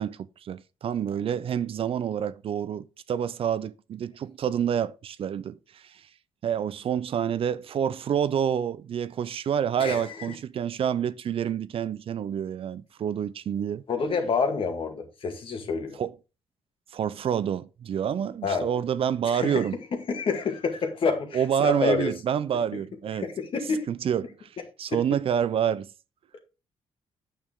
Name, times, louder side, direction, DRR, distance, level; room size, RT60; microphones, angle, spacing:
voice 1, 0.0-6.1 6.4-13.8 16.0-16.1 16.9-19.8 21.3-23.3 23.9-24.5 24.8-25.9, right 8 dB, 60° right, 0.6 m, -28 dB
voice 2, 9.8-10.3 13.9-16.0 18.4-18.7 19.2-19.6 20.1-22.1 22.7-22.8 23.2-23.9 24.9-25.0, left 5 dB, 55° left, 2.2 m, -28 dB
9.0 x 6.7 x 3.6 m
cardioid pair, 105°, 11 cm